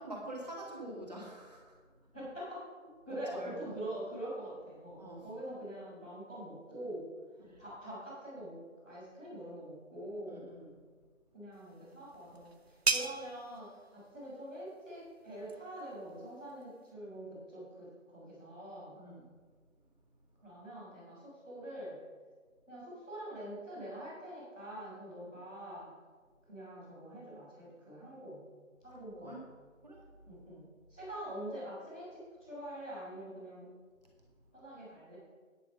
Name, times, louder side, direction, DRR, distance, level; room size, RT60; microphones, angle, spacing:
voice 1, 0.0-1.8 3.1-3.7 5.0-5.2 7.4-7.6 10.3-10.7 18.9-19.3 25.3-25.4 28.9-29.4 29.8-30.1, right 1 dB, 30° right, -2 dB, 2.2 m, -46 dB
voice 2, 2.1-2.6 3.0-7.0 7.6-8.6 8.8-10.4 11.3-19.0 20.4-22.0 22.7-25.9 26.5-28.4 28.8-29.4 30.2-33.7 34.5-35.1, right 1 dB, 5° left, -20 dB, 2.1 m, -44 dB
sound 1, 11.5-16.9, right 3 dB, 50° right, 0.8 m, -39 dB
10.0 x 8.9 x 5.2 m, 1.5 s
figure-of-eight pair, 180°, 40 cm